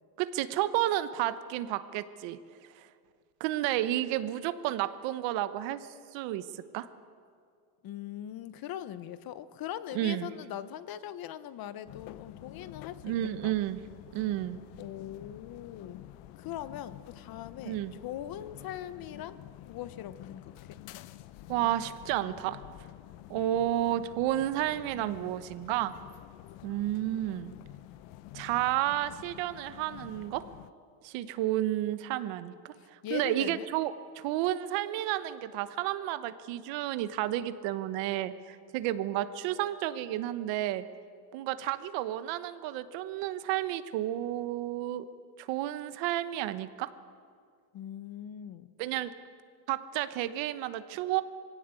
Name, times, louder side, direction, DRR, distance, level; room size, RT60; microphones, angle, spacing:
voice 1, 0.2-2.4 2.8-2.9 3.4-6.5 6.7-6.9 9.9-10.3 13.0-13.8 14.1-14.6 17.6-17.9 21.5-22.6 23.3-25.9 26.6-27.5 28.3-30.4 31.0-40.8 41.3-45.1 45.4-46.9 48.8-49.1 49.7-51.2, right 13 dB, 85° right, 13 dB, 1.1 m, -31 dB
voice 2, 7.8-13.1 13.4-13.5 14.8-16.0 16.4-19.4 19.7-20.8 32.8-33.7 47.7-48.7, left 11 dB, 55° left, 14 dB, 1.0 m, -41 dB
sound 1, 11.9-30.7, left 14 dB, 85° left, 0.9 m, -49 dB
22.0 x 17.0 x 8.3 m, 2.2 s
cardioid pair, 140°, 43 cm